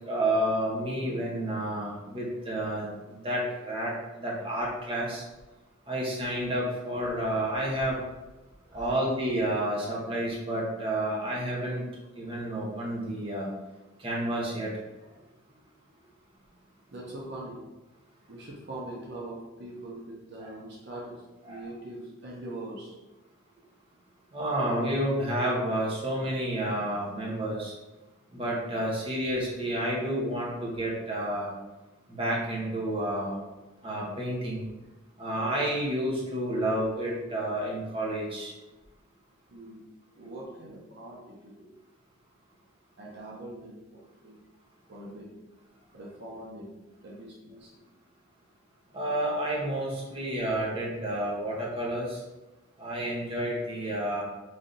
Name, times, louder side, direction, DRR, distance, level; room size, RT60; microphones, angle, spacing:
voice 1, 0.1-3.9 4.2-5.2 5.9-8.0 8.7-11.8 12.1-13.5 14.0-14.7 20.4-20.5 21.5-21.6 24.3-27.7 28.3-31.5 32.1-33.4 33.8-34.6 35.2-38.5 48.9-52.2 52.8-54.2, right 1 dB, 25° right, -5 dB, 0.9 m, -30 dB
voice 2, 8.6-9.0 15.0-15.3 15.8-15.9 16.9-17.6 18.3-23.0 39.5-41.7 43.0-44.4 44.9-45.3 45.9-46.7 47.0-47.8, right 1 dB, 55° right, -4 dB, 0.7 m, -43 dB
3.3 x 2.7 x 3.9 m, 1.1 s
head